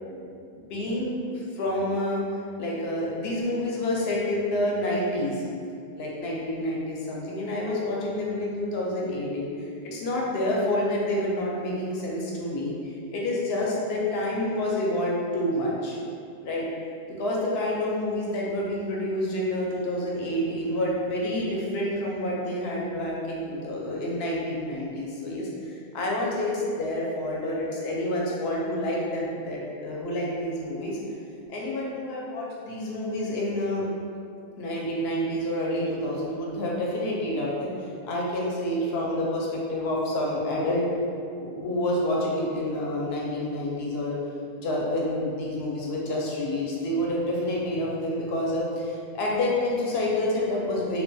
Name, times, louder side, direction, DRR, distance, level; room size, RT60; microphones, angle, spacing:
voice 1, 0.7-1.2 1.5-2.2 2.6-5.4 6.0-9.5 9.8-16.0 16.4-16.7 17.2-31.0 31.5-33.9 34.6-40.9 41.4-44.2 44.6-51.0, left 1 dB, 80° left, -4 dB, 0.8 m, -28 dB
2.4 x 2.2 x 2.6 m, 2.5 s
omnidirectional pair, 1.0 m